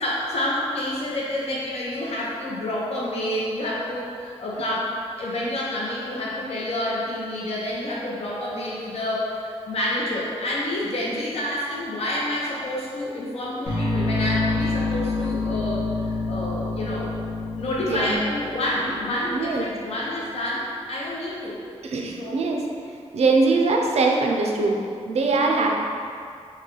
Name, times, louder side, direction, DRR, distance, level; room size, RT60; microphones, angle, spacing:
voice 1, 0.0-17.1 17.5-21.6 22.2-22.5, left 1 dB, 60° left, -5 dB, 0.6 m, -28 dB
sound 1, 13.7-19.7, left 3 dB, 80° left, 0.9 m, -27 dB
voice 2, 17.9-18.2 19.3-19.7 21.8-22.6 23.1-25.7, right 3 dB, 65° right, 1 dB, 0.4 m, -22 dB
3.2 x 2.2 x 3.6 m, 2.3 s
wide cardioid pair, 95°, 12 cm